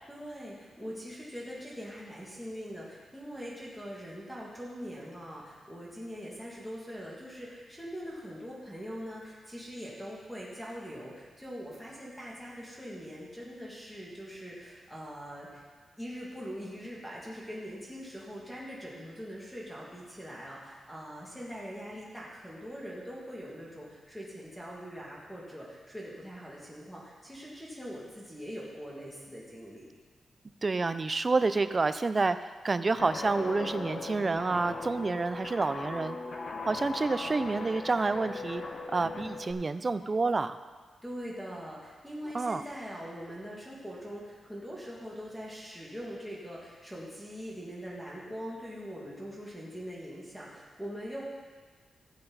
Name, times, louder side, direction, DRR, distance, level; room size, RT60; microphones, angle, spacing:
voice 1, 0.1-15.6 16.0-29.9 41.0-51.2, equal, 5° left, -5 dB, 2.4 m, -42 dB
voice 2, 30.6-36.2 36.6-38.6 38.9-40.6 42.3-42.6, right 3 dB, 30° right, 12 dB, 0.4 m, -29 dB
Guitar, 33.0-39.5, left 3 dB, 50° left, 1.1 m, -39 dB
15.0 x 7.7 x 4.1 m, 1.4 s
wide cardioid pair, 145°, 0 cm